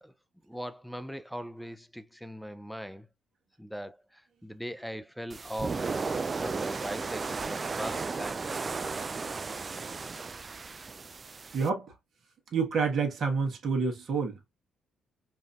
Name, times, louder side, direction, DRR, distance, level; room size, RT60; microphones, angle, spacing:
voice 1, 0.5-3.1 3.6-6.0 6.4-8.5, equal, ahead, 0.6 m, -40 dB
sound 1, 5.3-11.7, right 4 dB, 40° right, 0.3 m, -34 dB
voice 2, 11.5-11.9 12.5-14.4, right 5 dB, 60° right, 1.4 m, -28 dB
5.0 x 2.7 x 2.4 m
hypercardioid pair, 50°, 0 cm